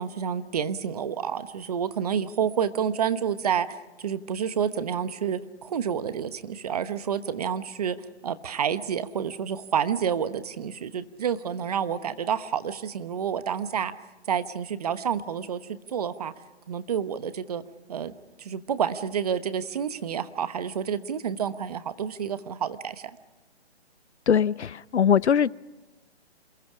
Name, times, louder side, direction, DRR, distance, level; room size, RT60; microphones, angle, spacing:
voice 1, 0.0-8.0 8.2-13.9 14.3-16.3 16.7-17.6 17.9-18.1 18.4-23.0, right 8 dB, 35° right, 13 dB, 1.1 m, -29 dB
voice 2, 24.3-25.5, left 8 dB, 90° left, 22 dB, 0.7 m, -21 dB
28.0 x 22.0 x 4.9 m, 1.2 s
hypercardioid pair, 160°, 33 cm